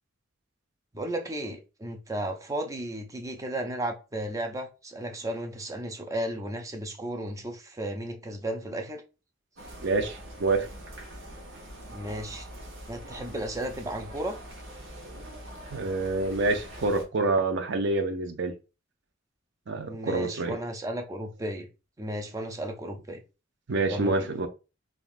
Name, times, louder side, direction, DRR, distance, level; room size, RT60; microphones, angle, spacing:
voice 1, 0.9-9.0 11.9-12.5 12.9-14.4 19.9-21.7 22.0-23.2 23.9-24.3, right 1 dB, 15° right, 0.5 m, -34 dB
sound 1, 9.6-17.0, right 1 dB, 85° right, 1.1 m, -44 dB
voice 2, 9.8-10.7 15.7-18.5 19.7-20.6 23.7-24.5, right 2 dB, 65° right, 0.6 m, -27 dB
3.5 x 2.4 x 2.5 m
head